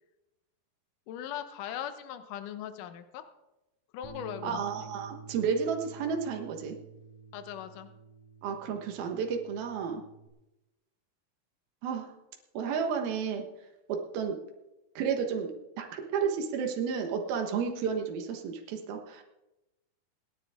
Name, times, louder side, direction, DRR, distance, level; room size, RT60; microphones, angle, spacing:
voice 1, 1.1-3.2 3.9-4.6 7.3-7.9, left 10 dB, 70° left, 9 dB, 2.4 m, -39 dB
Bass guitar, 4.0-10.3, right 4 dB, 60° right, 3.6 m, -50 dB
voice 2, 4.4-6.8 8.4-10.0 11.8-12.1 12.5-13.4 13.9-14.4 15.0-19.2, right 6 dB, 80° right, 3 dB, 3.2 m, -32 dB
27.5 x 10.0 x 3.7 m, 0.98 s
omnidirectional pair, 4.2 m